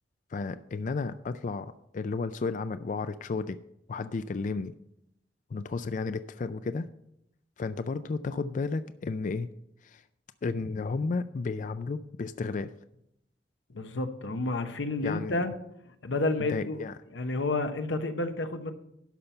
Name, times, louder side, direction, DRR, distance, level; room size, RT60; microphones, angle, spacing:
voice 1, 0.3-3.6 3.9-4.7 5.5-6.9 7.6-9.5 9.8-10.0 10.4-12.7 15.0-15.4 16.4-16.9, left 4 dB, 45° left, 12 dB, 0.4 m, -33 dB
voice 2, 13.7-15.5 16.0-16.8 17.1-18.7, left 2 dB, 90° left, 8 dB, 1.0 m, -30 dB
12.0 x 5.8 x 5.5 m, 0.79 s
head